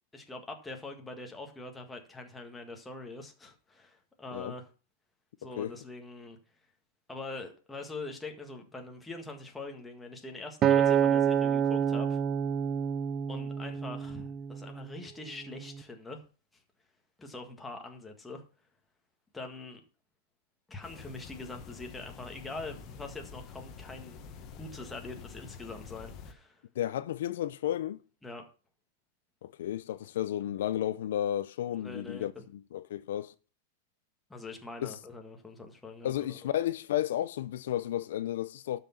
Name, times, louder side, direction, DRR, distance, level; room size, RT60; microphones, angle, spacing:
voice 1, 0.1-4.7 5.4-6.4 7.1-12.2 13.3-16.2 16.5-16.6 17.2-18.4 19.3-19.8 20.7-24.2 24.5-26.6 28.2-28.4 31.8-32.4 34.3-36.4, left 3 dB, 5° left, 1.7 m, -43 dB
Acoustic guitar, 10.6-15.0 15.6-15.8, right 8 dB, 20° right, 0.6 m, -27 dB
sound 1, 20.8-26.3, left 6 dB, 25° left, 1.5 m, -47 dB
voice 2, 26.7-28.0 29.4-33.3 34.8-35.0 36.0-38.8, left 12 dB, 65° left, 0.7 m, -33 dB
12.0 x 6.0 x 5.9 m
supercardioid pair, 165°, 0 cm